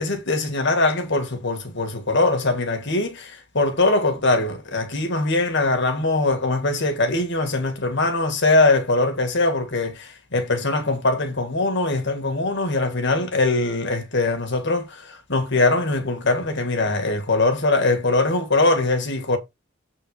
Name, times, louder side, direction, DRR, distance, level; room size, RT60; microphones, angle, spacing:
voice 1, 0.0-19.4, left 2 dB, 65° left, 2.0 m, -22 dB
7.7 x 4.6 x 4.9 m
head